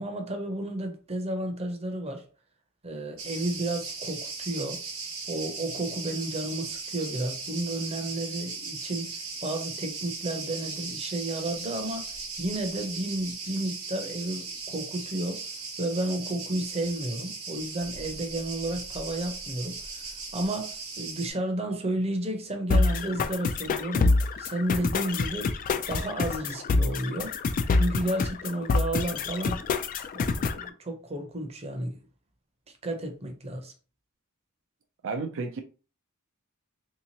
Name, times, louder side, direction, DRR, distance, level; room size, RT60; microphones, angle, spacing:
voice 1, 0.0-2.3 2.8-4.8 5.3-9.1 9.4-12.1 12.4-15.4 15.8-25.5 25.9-27.3 27.7-29.6 30.1-32.0 32.8-33.7, right 1 dB, 30° right, 0.7 m, -32 dB
Cricket, 3.2-21.3, right 4 dB, 85° right, 1.1 m, -38 dB
sound 1, 22.7-30.7, left 3 dB, 40° left, 0.3 m, -26 dB
voice 2, 35.0-35.6, right 4 dB, 65° right, 0.4 m, -32 dB
3.4 x 2.9 x 2.8 m
head